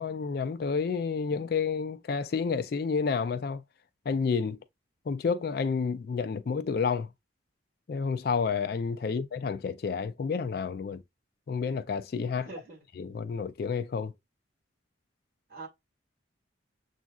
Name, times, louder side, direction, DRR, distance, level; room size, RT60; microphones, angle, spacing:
voice 1, 0.0-3.6 4.1-4.6 5.1-7.1 7.9-11.0 11.5-12.5 13.0-14.1, left 5 dB, 50° left, 0.3 m, -30 dB
voice 2, 12.4-12.8 15.5-15.7, right 3 dB, 45° right, 1.8 m, -43 dB
7.1 x 2.5 x 2.3 m
head